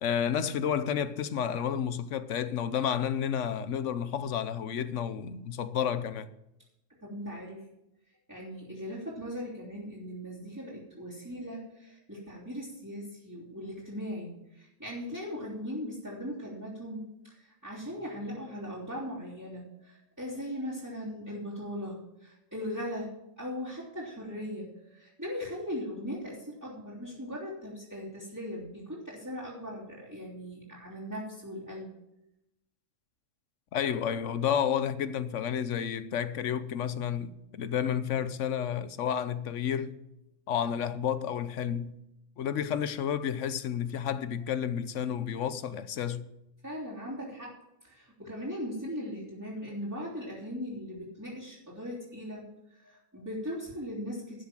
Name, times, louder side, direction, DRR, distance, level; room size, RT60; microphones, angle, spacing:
voice 1, 0.0-6.3 33.7-40.0 40.5-41.9 42.4-46.3, left 8 dB, 75° left, 1.1 m, -31 dB
voice 2, 7.0-7.6 8.3-31.9 46.6-47.5 47.8-54.4, equal, 10° right, 3.3 m, -39 dB
12.0 x 7.2 x 7.5 m
omnidirectional pair, 1.3 m